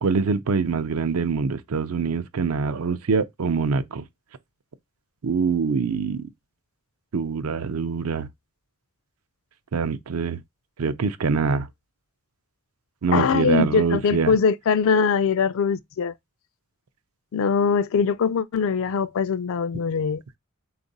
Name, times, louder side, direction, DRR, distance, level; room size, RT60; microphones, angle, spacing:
voice 1, 0.0-4.0 5.2-6.3 7.1-8.3 9.7-10.4 10.8-11.7 13.0-14.3, right 5 dB, 75° right, 0.5 m, -24 dB
voice 2, 13.1-16.1 17.3-20.2, left 6 dB, 60° left, 0.3 m, -22 dB
3.6 x 2.5 x 3.9 m
head